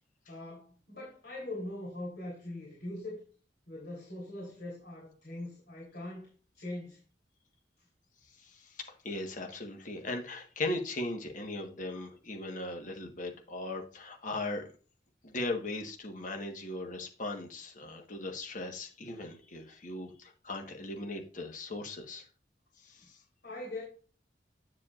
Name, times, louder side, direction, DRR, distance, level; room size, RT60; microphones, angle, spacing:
voice 1, 0.3-3.2 3.7-6.3 6.6-7.0 22.9-23.1 23.4-23.8, left 1 dB, 65° left, -6 dB, 3.4 m, -41 dB
voice 2, 8.4-14.6 15.2-22.3 22.8-23.2, left 2 dB, 45° left, 3 dB, 1.4 m, -38 dB
9.3 x 7.4 x 2.5 m, 0.38 s
head